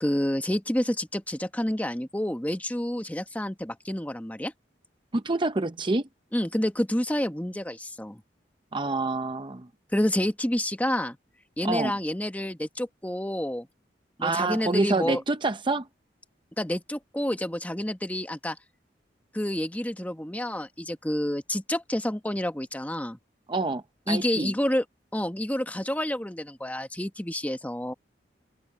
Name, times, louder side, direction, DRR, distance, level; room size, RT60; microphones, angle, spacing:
voice 1, 0.0-4.5 6.3-8.2 9.9-11.2 11.6-13.7 14.2-15.2 16.6-18.6 19.3-23.2 24.1-24.8 25.1-27.9, left 1 dB, 10° left, 1.2 m, -29 dB
voice 2, 5.1-6.1 8.7-9.7 11.6-11.9 14.2-15.9 23.5-24.5, right 2 dB, 30° right, 0.7 m, -27 dB
head